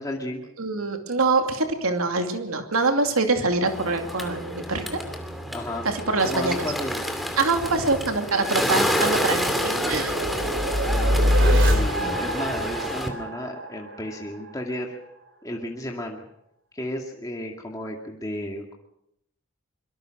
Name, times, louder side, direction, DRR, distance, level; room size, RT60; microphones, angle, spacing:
voice 1, 0.0-0.4 5.5-5.9 6.2-7.1 10.8-15.0 15.4-16.3 16.7-18.7, left 1 dB, 15° left, 0 dB, 2.2 m, -33 dB
voice 2, 0.6-5.0 5.8-6.6 7.4-10.1 11.7-12.1, right 3 dB, 85° right, 5 dB, 2.7 m, -25 dB
Bird, 3.7-13.1, equal, ahead, 2.6 m, -29 dB
sound 1, 7.8-14.6, equal, 60° right, 3.2 m, -25 dB
23.5 x 23.0 x 6.5 m, 0.78 s
head